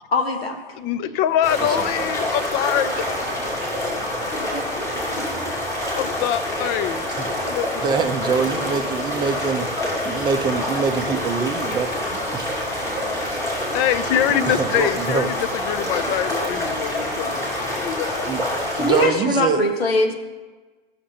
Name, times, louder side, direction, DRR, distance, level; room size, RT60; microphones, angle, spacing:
voice 1, 0.1-0.6 4.3-4.7 18.7-20.1, left 2 dB, 85° left, 5 dB, 1.4 m, -22 dB
voice 2, 0.7-3.3 5.9-7.1 7.5-7.9 13.7-18.3, left 10 dB, 35° left, 13 dB, 0.5 m, -24 dB
sound 1, 1.4-19.1, left 1 dB, 10° left, 2.8 m, -26 dB
voice 3, 7.8-9.7 10.0-12.5 12.7-12.8 13.3-13.4 14.5-15.3 17.9-18.0 18.3-18.4 18.8-19.7, right 6 dB, 15° right, 6 dB, 0.6 m, -24 dB
14.0 x 6.6 x 2.9 m, 1.3 s
hypercardioid pair, 115°, 29 cm